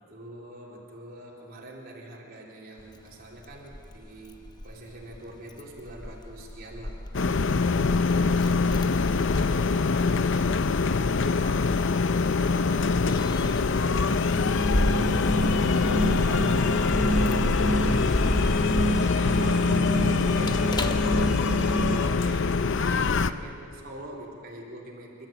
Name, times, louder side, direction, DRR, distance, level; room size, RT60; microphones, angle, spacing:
voice 1, 0.0-7.0 8.2-16.0 17.4-18.3 19.0-25.3, right 1 dB, 45° right, -3 dB, 3.7 m, -44 dB
Keys jangling, 2.8-21.8, left 1 dB, 20° left, 0.8 m, -34 dB
sound 1, 7.1-23.3, left 4 dB, 55° left, 0.6 m, -24 dB
voice 2, 8.0-8.4 15.7-17.2 17.6-18.6, right 1 dB, 85° right, 1 dB, 2.9 m, -44 dB
sound 2, 14.1-22.0, right 1 dB, ahead, 1.9 m, -30 dB
28.0 x 13.5 x 9.0 m, 2.5 s
head